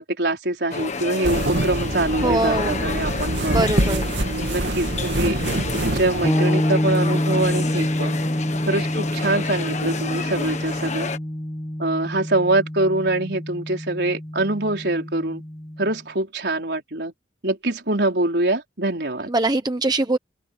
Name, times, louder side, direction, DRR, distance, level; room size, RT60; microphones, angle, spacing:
voice 1, 0.0-3.8 4.5-5.4 5.7-8.2 8.7-11.1 11.8-15.4 15.8-17.1 17.4-19.3, right 2 dB, 65° right, 5.0 m, -24 dB
sound 1, 0.7-11.2, left 4 dB, 40° left, 1.6 m, -30 dB
sound 2, 1.2-6.3, right 1 dB, 90° right, 2.6 m, -25 dB
voice 2, 2.2-2.9 3.5-4.2 19.3-20.2, right 2 dB, 25° right, 1.0 m, -22 dB
sound 3, 6.2-15.9, equal, 15° left, 0.8 m, -27 dB
open air
head